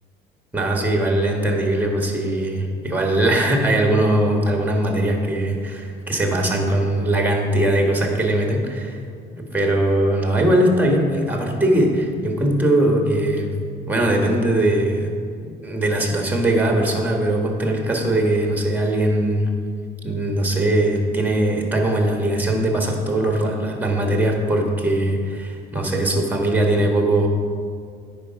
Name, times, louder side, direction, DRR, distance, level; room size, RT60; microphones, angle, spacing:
voice 1, 0.5-9.0 9.3-13.5 13.9-15.1 15.4-19.5 20.0-27.3, right 1 dB, 10° right, 2 dB, 1.5 m, -20 dB
9.3 x 4.5 x 5.8 m, 2.2 s
cardioid pair, 90°, 20 cm